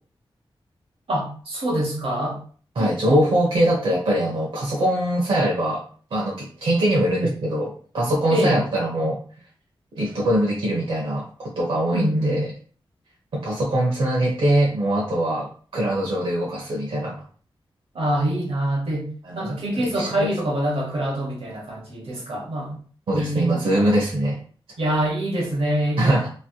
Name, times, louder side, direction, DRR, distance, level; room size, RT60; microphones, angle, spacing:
voice 1, 1.1-2.4 2.8-3.3 8.3-8.6 11.9-12.4 17.9-19.1 19.3-22.8 23.1-24.0 24.8-26.2, right 1 dB, 90° right, -1 dB, 1.1 m, -25 dB
voice 2, 2.8-5.8 6.1-9.2 9.9-12.5 13.3-17.2 19.3-20.3 23.1-24.4 26.0-26.3, right 1 dB, 75° right, -4 dB, 0.7 m, -22 dB
3.1 x 2.7 x 2.3 m, 0.43 s
wide cardioid pair, 125°, 9 cm